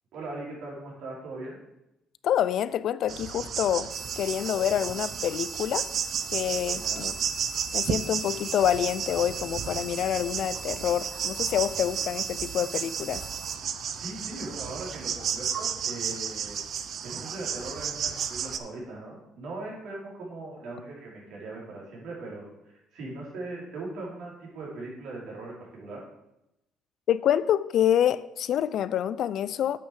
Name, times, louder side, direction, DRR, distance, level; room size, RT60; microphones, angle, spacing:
voice 1, 0.1-1.6 6.7-7.1 13.9-16.6 17.0-26.0, right 2 dB, 70° right, -3 dB, 3.6 m, -39 dB
voice 2, 2.2-5.9 6.3-7.1 7.7-13.2 27.1-29.8, left 10 dB, 60° left, 17 dB, 0.3 m, -27 dB
sound 1, 3.1-18.6, right 8 dB, 50° right, 0.5 m, -33 dB
sound 2, 3.9-13.6, right 2 dB, 10° right, 0.6 m, -43 dB
8.4 x 6.2 x 4.8 m, 0.88 s
cardioid pair, 125°, 0 cm